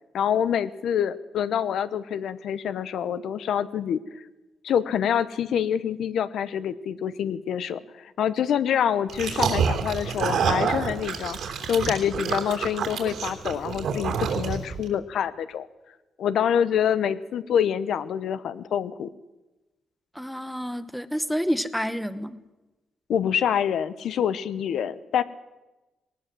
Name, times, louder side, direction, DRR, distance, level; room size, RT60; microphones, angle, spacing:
voice 1, 0.1-4.2 4.6-11.4 11.7-15.7 16.2-19.1 23.1-25.2, left 8 dB, 75° left, 15 dB, 0.8 m, -26 dB
sound 1, 9.1-14.8, right 6 dB, 75° right, 3.3 m, -27 dB
voice 2, 20.1-22.4, equal, ahead, 13 dB, 0.9 m, -29 dB
19.0 x 19.0 x 7.6 m, 1.1 s
cardioid pair, 130°, 0 cm